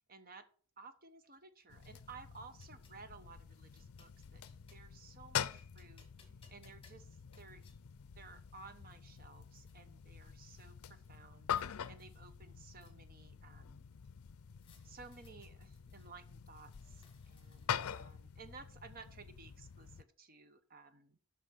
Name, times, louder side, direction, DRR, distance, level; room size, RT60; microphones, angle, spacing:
voice 1, 0.1-0.5 0.8-4.4 4.7-6.1 6.5-7.1 7.4-7.6 8.2-13.9 14.8-21.2, right 4 dB, 40° right, 10 dB, 0.9 m, -56 dB
sound 1, 1.3-3.0 3.5-5.0 5.3-7.8 8.5-8.6 8.9-9.8 11.0-11.7 12.0-13.3 14.6-16.1 16.6-17.9, left 5 dB, 25° left, 1.9 m, -68 dB
sound 2, 1.7-20.0, left 8 dB, 75° left, 0.5 m, -45 dB
8.3 x 5.8 x 5.8 m, 0.43 s
head